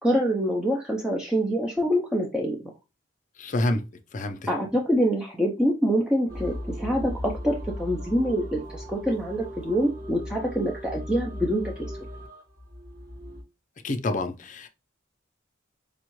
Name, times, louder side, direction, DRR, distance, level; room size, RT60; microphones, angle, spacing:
voice 1, 0.0-2.6 4.5-11.9, equal, 5° right, 0.5 m, -25 dB
voice 2, 3.4-3.8 4.1-4.5 13.8-14.7, left 2 dB, 40° left, 0.6 m, -28 dB
sound 1, 6.3-13.4, equal, 50° right, 1.7 m, -37 dB
5.2 x 2.4 x 3.0 m
head